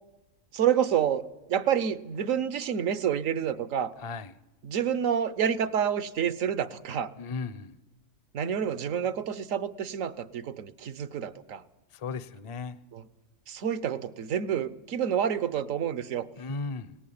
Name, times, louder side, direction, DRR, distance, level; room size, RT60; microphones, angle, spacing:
voice 1, 0.5-3.9 4.6-7.1 8.3-11.6 12.9-13.0 13.5-16.3, right 8 dB, 70° right, 15 dB, 1.3 m, -28 dB
voice 2, 4.0-4.4 7.2-7.8 11.9-12.8 16.4-17.0, left 4 dB, 30° left, 15 dB, 0.6 m, -36 dB
18.5 x 17.5 x 8.7 m, 1.0 s
omnidirectional pair, 1.4 m